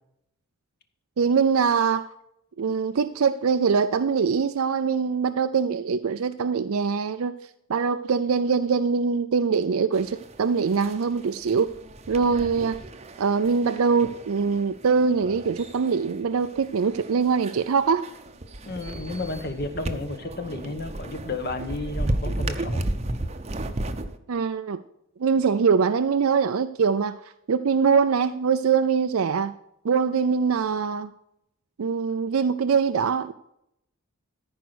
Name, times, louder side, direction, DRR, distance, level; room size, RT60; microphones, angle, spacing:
voice 1, 1.2-2.1 2.6-7.3 7.7-11.7 12.1-12.8 13.2-18.1 24.3-24.8 25.2-27.2 27.5-29.5 29.8-31.1 31.8-33.3, right 5 dB, 75° right, 0.5 m, -23 dB
sound 1, 9.9-24.2, right 1 dB, 30° right, 0.7 m, -34 dB
voice 2, 18.6-22.8, left 2 dB, 50° left, 1.1 m, -32 dB
14.0 x 5.2 x 6.1 m
head